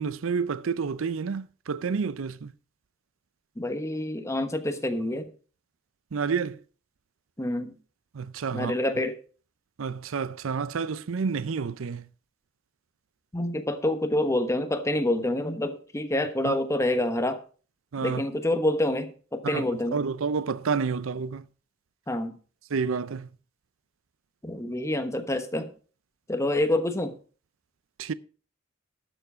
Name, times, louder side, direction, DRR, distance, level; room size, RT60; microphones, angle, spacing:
voice 1, 0.0-2.5 6.1-6.6 8.1-8.7 9.8-12.1 16.4-16.6 17.9-18.2 19.4-19.7 19.9-21.4 22.7-23.3 28.0-28.1, right 5 dB, 90° right, 0.5 m, -29 dB
voice 2, 3.6-5.2 7.4-7.8 8.5-9.2 13.3-17.4 18.0-20.0 22.1-22.4 24.4-25.7 26.3-27.2, left 1 dB, 15° left, 1.1 m, -27 dB
12.0 x 7.1 x 5.1 m
head